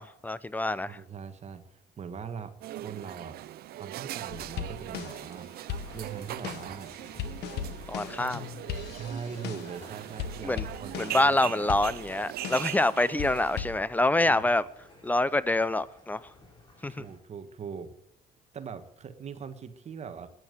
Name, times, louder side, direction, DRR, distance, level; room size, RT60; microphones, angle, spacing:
voice 1, 0.0-1.0 7.9-8.5 10.4-10.6 11.0-14.7 15.0-16.3 16.8-17.1, left 2 dB, 10° left, 0.6 m, -26 dB
voice 2, 0.9-3.4 3.7-6.9 8.9-11.3 14.3-14.4 16.9-17.9 18.5-20.3, right 6 dB, 40° right, 1.5 m, -41 dB
sound 1, 2.6-13.6, right 14 dB, 65° right, 0.6 m, -40 dB
sound 2, 4.3-5.3 5.7-9.8 10.2-11.3 11.7-12.8 13.2-13.8, left 9 dB, 80° left, 1.2 m, -38 dB
sound 3, 5.8-17.2, left 1 dB, 25° left, 5.3 m, -54 dB
14.5 x 9.6 x 8.1 m
cardioid pair, 110°, 17 cm